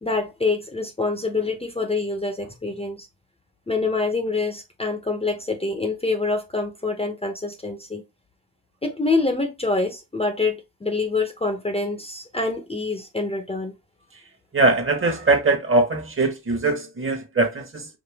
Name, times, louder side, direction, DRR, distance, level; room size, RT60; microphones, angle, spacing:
voice 1, 0.0-3.1 3.7-8.0 8.8-13.8, left 3 dB, 15° left, 0.8 m, -26 dB
voice 2, 14.5-17.9, right 3 dB, 30° right, 1.3 m, -21 dB
5.2 x 2.5 x 3.5 m
cardioid pair, 95°, 40 cm